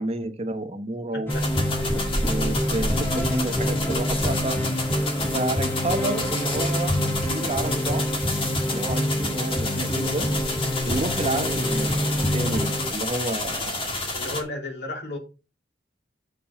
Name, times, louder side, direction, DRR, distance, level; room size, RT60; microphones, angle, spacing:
voice 1, 0.0-1.4 1.9-4.6 5.3-8.1 8.7-10.3 10.8-14.0, right 2 dB, 35° right, 8 dB, 0.9 m, -30 dB
voice 2, 1.1-1.5 2.1-2.2 14.1-15.2, left 1 dB, 60° left, 2 dB, 2.5 m, -33 dB
sound 1, 1.3-14.4, left 2 dB, 30° left, 1.8 m, -30 dB
sound 2, 1.3-12.9, equal, 10° left, 1.6 m, -26 dB
7.2 x 6.7 x 4.2 m, 0.31 s
head